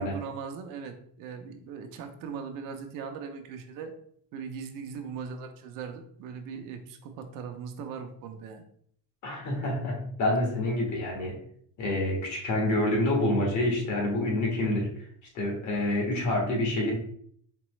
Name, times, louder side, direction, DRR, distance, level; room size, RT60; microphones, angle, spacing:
voice 1, 0.0-3.9 4.3-8.6, right 6 dB, 65° right, 6 dB, 0.7 m, -39 dB
voice 2, 9.2-11.4 11.8-14.9 15.3-16.9, left 1 dB, 55° left, 0 dB, 1.5 m, -27 dB
4.4 x 3.0 x 3.1 m, 0.63 s
cardioid pair, 135°, 35 cm